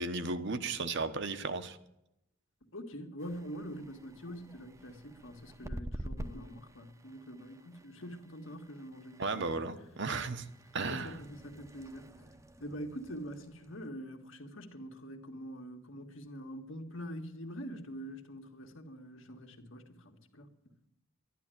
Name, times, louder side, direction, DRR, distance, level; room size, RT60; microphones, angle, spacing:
voice 1, 0.0-1.8 9.2-10.4 10.7-11.2, right 3 dB, 55° right, 1.1 m, -35 dB
voice 2, 2.7-9.6 10.8-12.1 12.6-20.5, equal, 65° left, 1.8 m, -45 dB
sound 1, 3.2-13.9, equal, 15° right, 0.8 m, -49 dB
12.5 x 11.5 x 9.1 m
head